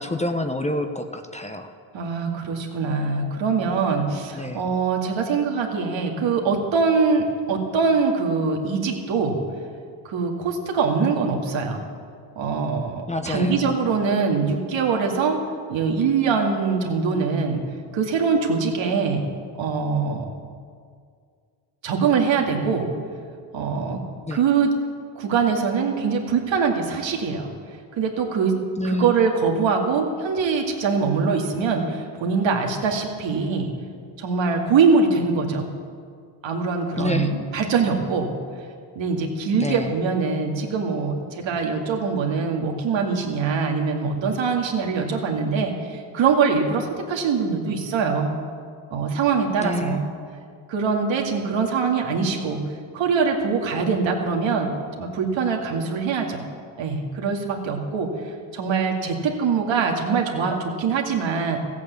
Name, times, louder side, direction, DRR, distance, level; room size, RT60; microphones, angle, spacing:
voice 1, 0.0-1.7 4.4-4.7 13.1-13.8 24.3-24.4 28.8-29.2 37.0-37.3 39.6-39.9 49.6-50.0, left 1 dB, 15° left, 6 dB, 1.0 m, -27 dB
voice 2, 1.9-9.4 10.0-11.8 12.4-15.4 15.7-17.6 17.9-19.2 19.6-20.2 21.8-22.9 23.5-24.0 24.3-24.7 25.2-27.5 28.0-28.6 28.8-33.7 34.2-35.7 36.4-38.3 39.0-48.3 48.9-50.0 50.7-52.6 52.9-56.4 56.8-58.1 58.5-61.6, right 5 dB, 65° right, 1 dB, 2.2 m, -23 dB
14.5 x 8.5 x 8.2 m, 2.2 s
supercardioid pair, 75°, 48 cm